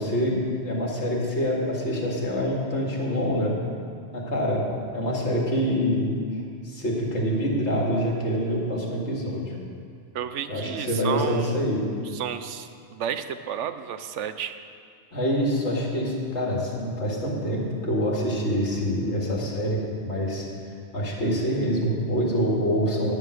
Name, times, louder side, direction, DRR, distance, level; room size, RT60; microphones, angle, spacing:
voice 1, 0.0-3.5 4.1-4.6 4.9-6.2 6.6-9.5 10.5-11.8 15.1-20.5 20.9-23.1, equal, 75° left, -2 dB, 2.4 m, -26 dB
voice 2, 10.1-11.6 12.1-14.6, right 8 dB, 85° right, 10 dB, 1.0 m, -32 dB
13.0 x 9.1 x 6.4 m, 2.2 s
omnidirectional pair, 1.2 m